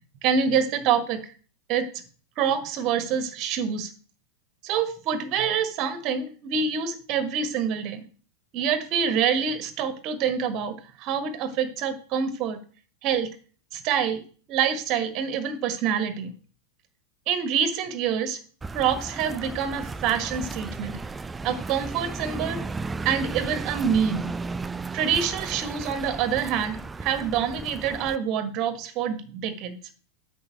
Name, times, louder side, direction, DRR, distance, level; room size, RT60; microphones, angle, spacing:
voice 1, 0.2-1.3 1.7-1.8 2.4-3.9 4.6-8.0 8.5-12.6 13.0-13.3 13.7-14.2 14.5-16.3 17.3-18.4 18.7-21.0 21.4-22.6 23.0-24.3 24.9-29.8, right 7 dB, 40° right, 11 dB, 1.4 m, -26 dB
sound 1, 18.6-28.2, right 4 dB, 15° right, 0.4 m, -35 dB
8.6 x 5.5 x 6.5 m, 0.41 s
figure-of-eight pair, 90°, 0 cm